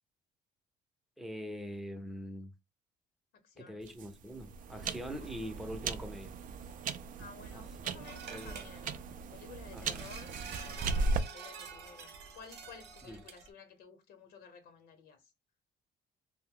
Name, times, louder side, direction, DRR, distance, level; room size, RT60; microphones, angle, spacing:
voice 1, 1.2-2.5 3.6-6.3 7.5-7.6 8.3-8.6 9.7-10.1 13.1-13.2, equal, ahead, 0.5 m, -43 dB
voice 2, 3.4-3.9 5.2-5.3 7.2-9.0 9.3-15.3, left 5 dB, 80° left, 0.7 m, -54 dB
sound 1, 3.8-11.2, right 4 dB, 55° right, 0.4 m, -37 dB
sound 2, 8.0-9.1 9.8-13.5, right 6 dB, 80° right, 0.7 m, -47 dB
2.6 x 2.0 x 3.5 m
cardioid pair, 110°, 17 cm